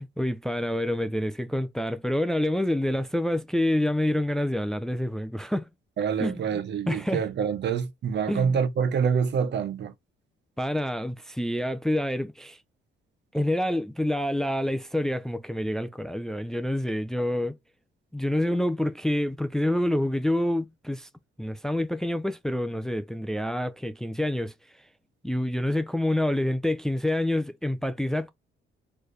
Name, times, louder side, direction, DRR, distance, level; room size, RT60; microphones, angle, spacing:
voice 1, 0.0-5.7 6.2-6.6 6.9-7.2 8.3-8.6 10.6-12.6 13.3-17.6 18.1-21.1 21.4-24.5 25.2-28.3, left 1 dB, 5° left, 0.5 m, -27 dB
voice 2, 6.0-9.9, right 6 dB, 60° right, 0.9 m, -26 dB
4.3 x 3.3 x 3.2 m
cardioid pair, 90°, 20 cm